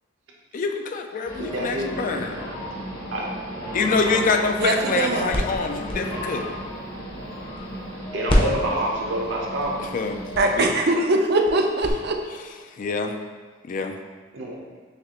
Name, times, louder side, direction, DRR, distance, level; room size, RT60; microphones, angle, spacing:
voice 1, 0.5-2.4 3.7-6.5 9.9-10.2 10.5-10.7 12.8-13.2 13.7-14.0, left 4 dB, 45° left, 5 dB, 0.3 m, -25 dB
sound 1, 1.2-10.7, equal, 80° left, 1.2 m, -35 dB
voice 2, 1.4-2.5 3.1-3.3 4.0-4.4 4.7-5.4 8.1-9.8 14.3-14.6, right 1 dB, 70° right, -2 dB, 0.9 m, -28 dB
sound 2, 4.3-7.9 8.3-11.9, equal, 30° left, 0.7 m, -29 dB
voice 3, 4.6-5.3 10.4-12.2, right 2 dB, 55° right, 3 dB, 0.5 m, -22 dB
6.4 x 2.5 x 3.0 m, 1.4 s
head